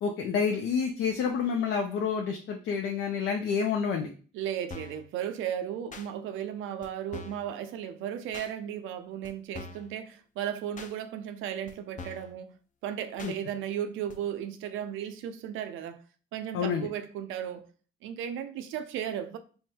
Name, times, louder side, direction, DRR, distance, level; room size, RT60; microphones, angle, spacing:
voice 1, 0.0-4.1 13.2-13.3 16.5-16.9, left 6 dB, 85° left, 0.5 m, -28 dB
voice 2, 4.3-12.6 12.8-16.0 16.3-17.7 18.0-19.4, right 9 dB, 90° right, 0.5 m, -35 dB
sound 1, 4.7-5.0 5.9-6.1 6.8-6.9 7.1-7.5 8.3-8.5 9.2-9.3 9.5-9.9 10.8-10.9 11.7-11.8 12.0-12.3 13.2-13.4 14.1-14.2, left 4 dB, 40° left, 0.6 m, -43 dB
3.5 x 2.1 x 4.2 m
cardioid pair, 90°, 20 cm